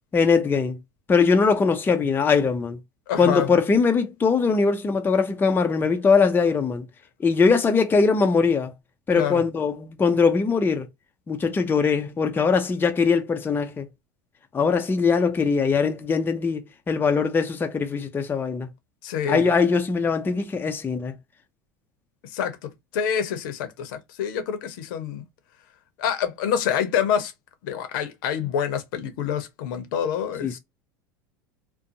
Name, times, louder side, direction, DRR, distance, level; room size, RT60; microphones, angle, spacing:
voice 1, 0.1-0.8 1.1-2.8 3.2-6.8 7.2-8.7 9.1-10.9 11.3-13.9 14.5-18.7 19.3-21.1 30.4-30.6, left 5 dB, 20° left, 0.5 m, -21 dB
voice 2, 3.1-3.6 9.1-9.4 19.0-19.5 22.2-25.2 26.0-27.3 27.6-30.6, left 8 dB, 70° left, 0.7 m, -27 dB
2.5 x 2.2 x 2.6 m
hypercardioid pair, 95°, 11 cm